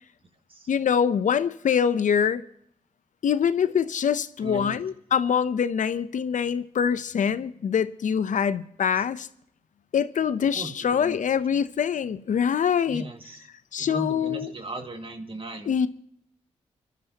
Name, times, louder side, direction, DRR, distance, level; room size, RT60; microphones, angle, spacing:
voice 1, 0.7-2.4 3.2-9.3 9.9-13.0 13.7-14.5 15.7-15.9, left 7 dB, 65° left, 0.7 m, -24 dB
voice 2, 4.4-4.8 8.4-8.5 9.0-9.1 10.5-11.2 12.9-13.5 13.8-15.7, right 2 dB, 40° right, 2.1 m, -37 dB
29.5 x 11.5 x 2.9 m
supercardioid pair, 50°, 14 cm